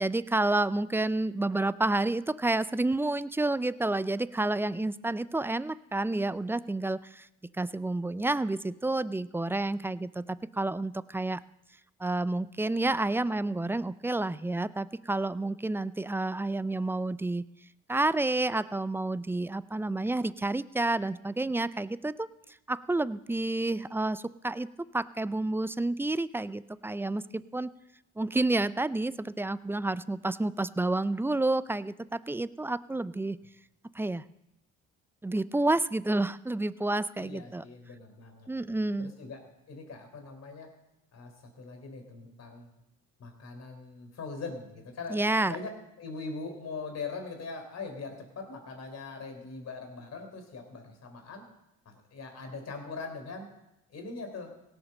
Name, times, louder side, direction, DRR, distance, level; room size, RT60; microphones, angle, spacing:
voice 1, 0.0-7.3 7.6-11.4 12.0-17.4 17.9-22.3 22.7-24.7 24.9-27.7 28.2-33.4 34.0-34.2 35.2-37.6 38.5-39.1 45.1-45.6, right 2 dB, 5° right, 17 dB, 0.4 m, -29 dB
voice 2, 37.2-38.5 39.0-40.7 41.1-42.7 43.2-51.4 51.9-53.5 53.9-54.5, left 4 dB, 55° left, 5 dB, 3.6 m, -41 dB
17.0 x 7.2 x 6.5 m, 0.88 s
supercardioid pair, 80°, 32 cm